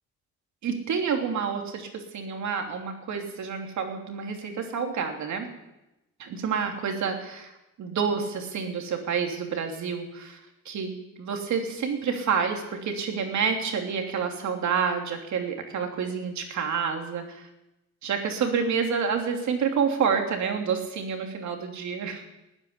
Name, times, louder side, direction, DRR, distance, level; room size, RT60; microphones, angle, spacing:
voice 1, 0.6-5.5 6.2-7.5 7.8-10.4 10.6-17.5 18.0-22.2, right 6 dB, 70° right, 3 dB, 3.1 m, -28 dB
14.5 x 10.0 x 9.8 m, 0.94 s
cardioid pair, 90°, 30 cm